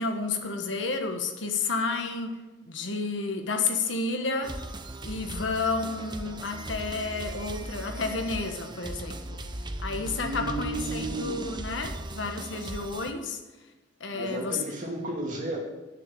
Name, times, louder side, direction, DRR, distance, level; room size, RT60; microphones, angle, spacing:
voice 1, 0.0-2.4 2.6-4.5 5.0-9.4 9.8-13.4 14.0-14.6 15.0-15.1, left 3 dB, 85° left, 5 dB, 1.3 m, -31 dB
sound 1, 4.4-13.1, right 1 dB, 25° right, 0.7 m, -38 dB
voice 2, 10.2-11.5 14.1-15.6, right 2 dB, 45° right, -1 dB, 2.5 m, -33 dB
9.7 x 6.8 x 7.0 m, 1.1 s
head